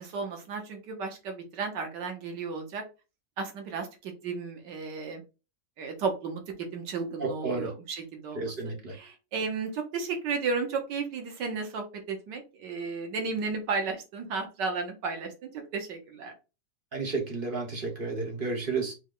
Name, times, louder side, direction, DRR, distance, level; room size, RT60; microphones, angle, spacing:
voice 1, 0.0-2.8 3.4-5.2 5.8-6.4 6.7-8.5 8.9-16.3, right 4 dB, 85° right, 1.7 m, -34 dB
voice 2, 7.2-7.7 8.3-9.0 16.9-18.9, right 3 dB, 35° right, 1.1 m, -32 dB
5.1 x 2.2 x 3.8 m
omnidirectional pair, 1.8 m